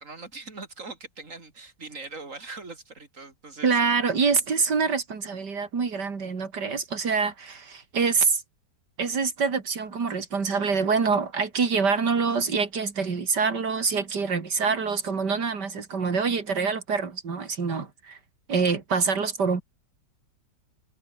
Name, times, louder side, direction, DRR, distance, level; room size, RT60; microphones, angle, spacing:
voice 1, 0.0-3.8, right 3 dB, 45° right, 4.0 m, -41 dB
voice 2, 3.6-8.4 9.0-18.2 18.5-19.6, right 5 dB, 70° right, 3.3 m, -25 dB
omnidirectional pair, 1.9 m